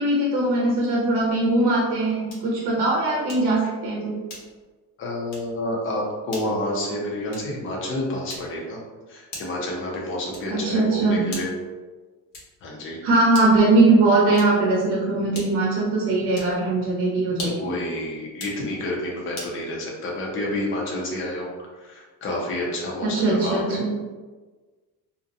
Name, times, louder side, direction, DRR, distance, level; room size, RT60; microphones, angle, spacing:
voice 1, 0.0-4.2 10.5-11.3 13.0-17.7 23.0-23.9, right 2 dB, 70° right, -3 dB, 0.7 m, -20 dB
sound 1, 2.3-2.6 3.3-3.6 4.3-4.7 5.3-5.6 6.3-6.6 7.3-7.6 8.3-8.7 9.3-9.7 10.3-10.7 11.3-11.7 12.3-12.7 13.3-13.7 14.3-14.7 15.3-15.7 16.3-16.6 17.3-17.7 18.3-18.6 19.3-19.6, left 2 dB, 85° left, 1.1 m, -39 dB
voice 2, 5.0-8.8 9.1-11.5 12.6-13.0 17.4-21.5 21.7-23.8, left 1 dB, 35° left, -3 dB, 0.5 m, -29 dB
2.5 x 2.1 x 2.6 m, 1.3 s
cardioid pair, 175°, 39 cm